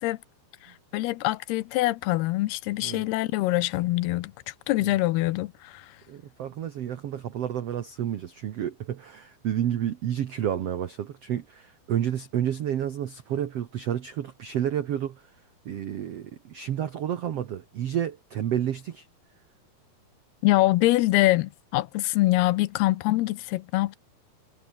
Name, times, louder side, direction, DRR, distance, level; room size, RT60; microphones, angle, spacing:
voice 1, 0.9-5.9 20.4-24.0, left 18 dB, 80° left, 2.7 m, -24 dB
voice 2, 6.1-15.2 15.6-19.1, right 10 dB, 85° right, 1.3 m, -30 dB
omnidirectional pair, 4.7 m